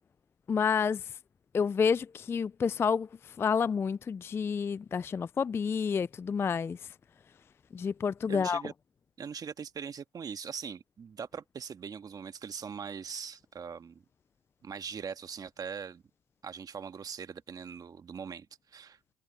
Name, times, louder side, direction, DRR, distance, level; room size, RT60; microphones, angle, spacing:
voice 1, 0.5-1.0 1.5-3.1 3.4-6.8 7.7-8.6, left 6 dB, 20° left, 0.3 m, -29 dB
voice 2, 8.3-8.7 9.2-14.0 14.6-16.0 16.4-19.0, right 6 dB, 30° right, 1.6 m, -41 dB
supercardioid pair, 110°, 13 cm